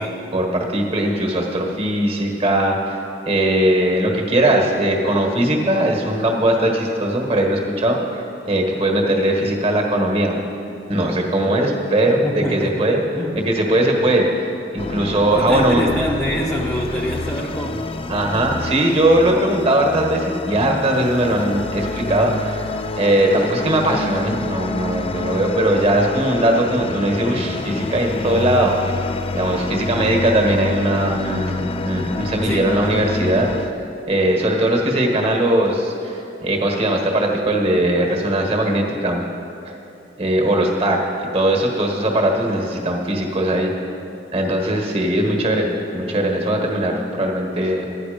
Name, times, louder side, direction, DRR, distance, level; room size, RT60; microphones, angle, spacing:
voice 1, 0.3-3.0 3.3-10.4 10.9-13.0 13.3-14.3 14.7-15.8 18.1-22.7 23.0-33.5 34.1-39.2 40.2-41.0 41.3-43.7 44.3-47.8, right 1 dB, 30° right, 1 dB, 1.4 m, -19 dB
voice 2, 12.2-12.7 13.1-13.4 15.3-18.2 32.4-32.8, equal, ahead, -4 dB, 0.7 m, -26 dB
sound 1, 14.8-33.7, left 3 dB, 30° left, 0.4 m, -27 dB
12.5 x 9.6 x 5.1 m, 2.8 s
head